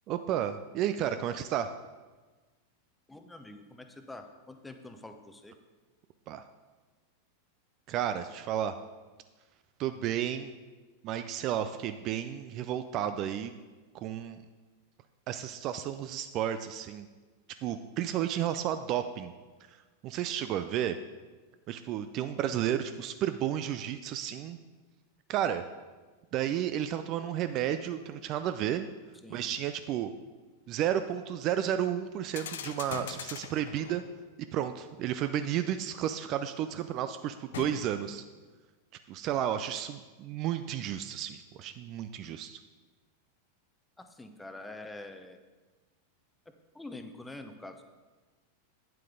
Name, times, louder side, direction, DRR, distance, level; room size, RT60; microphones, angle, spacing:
voice 1, 0.1-1.7 6.3-6.5 7.9-8.8 9.8-10.5 11.0-13.5 13.9-14.4 15.3-17.1 17.6-19.3 20.0-21.0 21.7-24.6 25.3-25.6 26.3-28.9 29.3-30.1 30.7-34.0 34.5-38.2 39.1-42.6, right 10 dB, 40° right, 10 dB, 0.4 m, -32 dB
voice 2, 3.1-5.6 29.2-29.6 44.0-45.4 46.7-47.7, left 2 dB, 5° left, 7 dB, 0.7 m, -46 dB
sound 1, 32.3-34.2 37.5-38.2, left 8 dB, 60° left, 0.5 m, -41 dB
9.2 x 7.5 x 3.8 m, 1.3 s
figure-of-eight pair, 90°, 0 cm